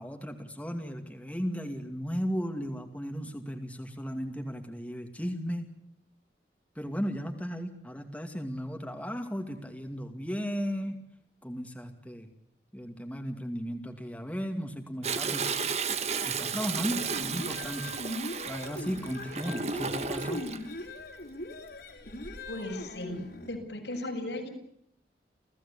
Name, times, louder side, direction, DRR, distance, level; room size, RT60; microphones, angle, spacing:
voice 1, 0.0-5.7 6.8-11.0 11.4-12.3 12.7-15.7 16.2-18.0 18.5-20.4, equal, 10° left, 4 dB, 2.4 m, -35 dB
Toilet flush, 15.0-20.6 22.1-22.5 23.0-23.1, right 5 dB, 35° right, 1.6 m, -33 dB
sound 1, 16.8-23.6, left 1 dB, 65° left, 4.4 m, -40 dB
voice 2, 22.5-23.2 23.4-24.5, left 1 dB, 90° left, 2 dB, 7.7 m, -36 dB
30.0 x 16.5 x 8.6 m, 0.74 s
head